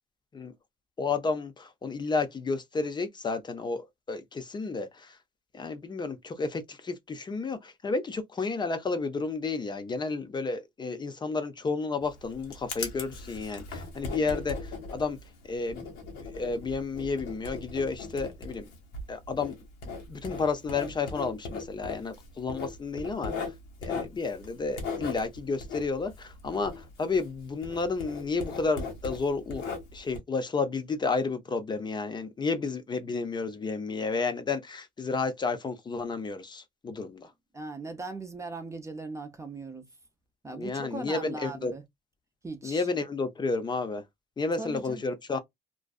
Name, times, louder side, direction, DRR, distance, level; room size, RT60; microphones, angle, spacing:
voice 1, 1.0-5.2 5.5-15.2 15.4-15.9 16.2-18.7 19.1-19.6 20.1-23.5 23.8-29.6 29.9-37.3 40.5-41.7 42.6-44.0 44.4-45.4, left 4 dB, 25° left, 0.5 m, -31 dB
Writing, 12.0-27.4 27.6-30.2, left 4 dB, 90° left, 1.1 m, -38 dB
voice 2, 37.2-39.8 40.4-41.8 42.4-42.9 44.5-45.0, right 3 dB, 15° right, 0.6 m, -39 dB
2.5 x 2.3 x 2.3 m
cardioid pair, 110°, 17 cm